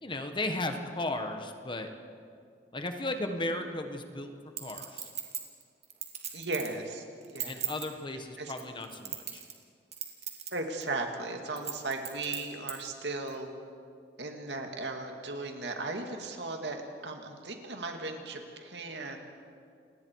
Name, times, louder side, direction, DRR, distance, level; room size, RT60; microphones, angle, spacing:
voice 1, 0.0-1.9 2.7-4.3 4.6-5.1 7.5-9.4, left 2 dB, 30° left, 6 dB, 1.4 m, -35 dB
Chink clink, 4.6-6.8 7.2-7.9 8.5-9.6 9.9-10.5 10.8-10.9 11.6-12.8 13.3-13.4, right 9 dB, 40° right, 2.7 m, -37 dB
voice 2, 6.3-7.0 7.3-7.6 8.4-8.5 10.5-13.5 14.2-19.2, right 2 dB, 70° right, 3 dB, 2.4 m, -36 dB
29.0 x 20.0 x 4.8 m, 2.3 s
head